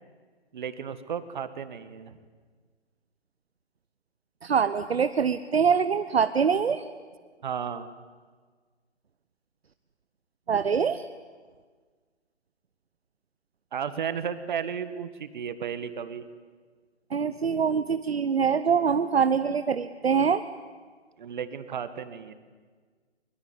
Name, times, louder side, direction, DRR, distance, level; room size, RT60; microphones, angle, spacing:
voice 1, 0.5-2.2 7.4-7.9 13.7-16.3 21.2-22.3, right 7 dB, 45° right, 13 dB, 1.9 m, -34 dB
voice 2, 4.4-6.8 10.5-11.1 17.1-20.4, right 6 dB, 60° right, 12 dB, 1.0 m, -24 dB
23.0 x 22.5 x 9.8 m, 1.5 s
figure-of-eight pair, 140°, 34 cm